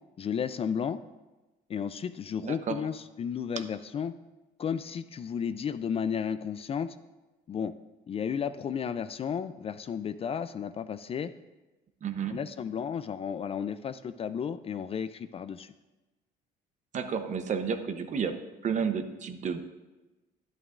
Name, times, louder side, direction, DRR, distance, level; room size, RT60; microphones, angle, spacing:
voice 1, 0.2-1.0 1.7-4.1 4.6-6.9 7.5-7.7 8.1-11.3 12.3-15.7, left 7 dB, 35° left, 12 dB, 0.4 m, -33 dB
voice 2, 2.4-2.8 12.0-12.4 16.9-19.6, right 6 dB, 45° right, 8 dB, 0.8 m, -31 dB
11.0 x 11.0 x 2.5 m, 1.1 s
cardioid pair, 110°, 17 cm